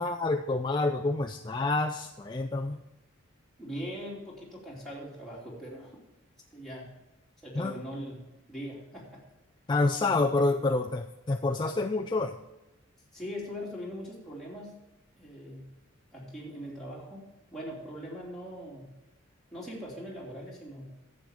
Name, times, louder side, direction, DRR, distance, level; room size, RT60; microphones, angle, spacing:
voice 1, 0.0-2.8 7.6-7.8 9.7-12.4, left 3 dB, 20° left, 3 dB, 0.4 m, -28 dB
voice 2, 3.6-6.0 6.5-6.9 7.4-9.2 10.0-10.2 13.1-14.8 15.2-15.7 16.1-17.3 17.5-18.9 19.5-21.0, equal, ahead, -6 dB, 2.9 m, -41 dB
10.5 x 7.7 x 5.0 m, 1.0 s
head